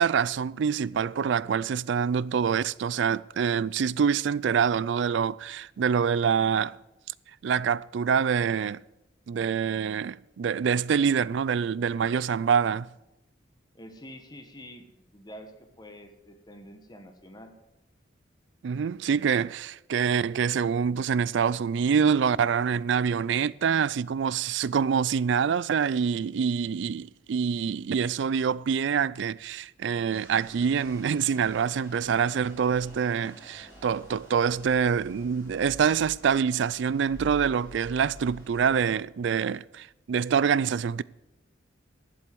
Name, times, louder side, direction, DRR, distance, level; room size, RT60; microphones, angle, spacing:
voice 1, 0.0-6.8 7.4-8.8 9.3-12.9 18.6-41.0, right 7 dB, 70° right, 0.3 m, -26 dB
voice 2, 13.7-14.9 15.1-17.5, equal, 20° left, 1.3 m, -47 dB
sound 1, 30.1-38.9, equal, 15° right, 5.4 m, -48 dB
12.0 x 7.6 x 7.7 m
head